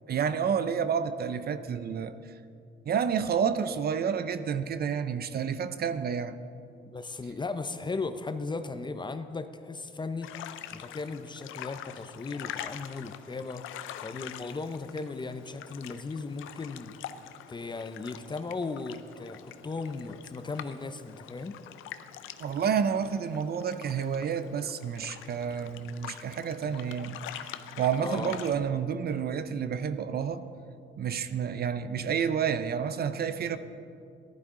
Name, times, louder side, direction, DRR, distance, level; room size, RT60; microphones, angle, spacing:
voice 1, 0.1-2.1 2.9-6.4 22.4-30.5 31.0-33.6, right 7 dB, 50° right, 12 dB, 0.6 m, -30 dB
voice 2, 6.9-10.3 10.7-13.6 14.0-16.9 17.5-21.6 28.0-28.4, left 3 dB, 25° left, 10 dB, 0.6 m, -36 dB
sound 1, 10.2-28.5, left 11 dB, 85° left, 0.6 m, -45 dB
14.5 x 11.5 x 3.8 m, 2.5 s
cardioid pair, 90°, 20 cm